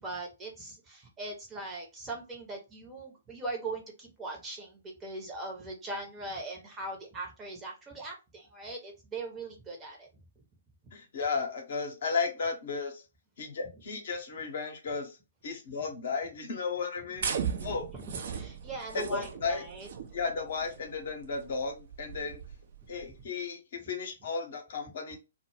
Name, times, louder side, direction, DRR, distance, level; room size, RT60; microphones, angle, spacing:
voice 1, 0.0-10.1 17.1-17.3 17.9-19.9 22.2-22.3, right 2 dB, 15° right, 0.7 m, -40 dB
voice 2, 10.9-13.0 13.4-15.2 15.4-17.3 17.6-17.9 18.9-19.6 20.1-22.4 22.9-25.2, left 4 dB, 50° left, 0.7 m, -34 dB
sound 1, 17.2-23.2, right 7 dB, 50° right, 0.4 m, -38 dB
2.1 x 2.1 x 3.1 m
figure-of-eight pair, 120°, 0 cm